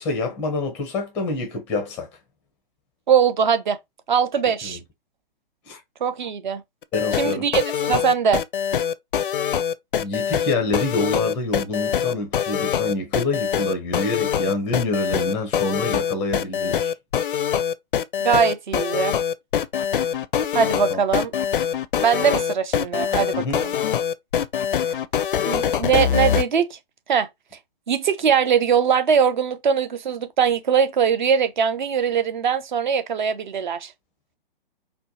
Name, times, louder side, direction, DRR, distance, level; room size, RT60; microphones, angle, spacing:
voice 1, 0.0-2.1 4.6-4.8 5.7-5.8 6.9-7.5 10.0-16.9 20.9-21.0 23.3-23.6, left 2 dB, 5° left, 0.5 m, -27 dB
voice 2, 3.1-3.8 4.1-4.8 6.0-6.6 7.2-8.4 18.2-19.2 20.5-21.3 22.0-23.7 25.5-26.8 27.1-27.3 27.9-33.9, right 7 dB, 55° right, 0.6 m, -21 dB
sound 1, 6.8-26.4, left 8 dB, 60° left, 0.4 m, -23 dB
4.3 x 2.1 x 2.8 m
figure-of-eight pair, 135°, 29 cm